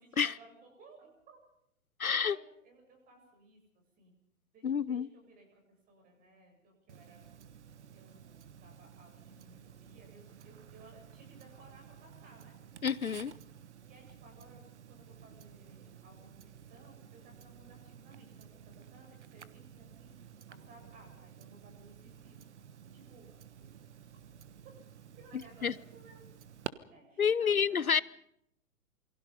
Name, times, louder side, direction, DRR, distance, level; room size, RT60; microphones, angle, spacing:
voice 1, 0.0-1.4 2.1-4.1 4.5-5.6 5.9-7.3 7.9-12.6 13.8-22.4 22.9-23.4 25.2-26.4 26.8-27.9, right 2 dB, 20° right, 8.0 m, -59 dB
voice 2, 2.0-2.4 4.6-5.1 12.8-13.3 25.6-25.7 27.2-28.0, left 7 dB, 75° left, 0.9 m, -28 dB
Tick-tock, 6.9-26.7, right 8 dB, 50° right, 1.3 m, -52 dB
28.0 x 23.5 x 5.3 m
figure-of-eight pair, 120°, 43 cm